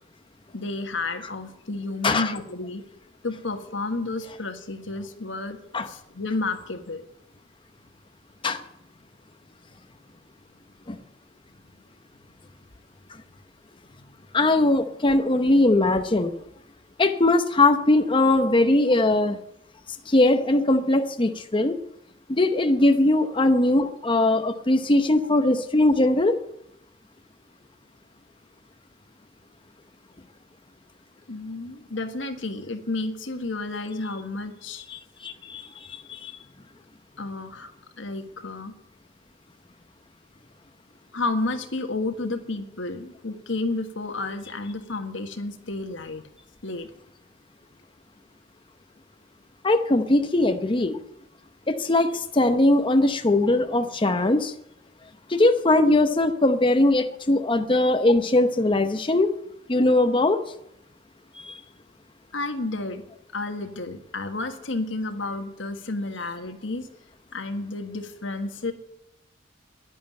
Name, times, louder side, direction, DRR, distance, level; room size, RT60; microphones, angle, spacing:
voice 1, 0.5-2.8 3.2-7.0 14.0-14.1 31.3-34.8 37.2-37.7 38.0-38.7 41.1-46.2 46.6-46.9 62.3-63.0 63.3-66.9 67.3-68.7, left 2 dB, 80° left, 7 dB, 1.6 m, -31 dB
voice 2, 14.3-16.3 17.0-19.4 20.1-21.7 22.3-26.4 34.9-36.3 49.6-51.0 51.7-54.5 55.3-59.3 59.7-60.4 61.3-61.6, left 2 dB, 25° left, 7 dB, 0.8 m, -20 dB
11.0 x 11.0 x 8.9 m, 0.81 s
head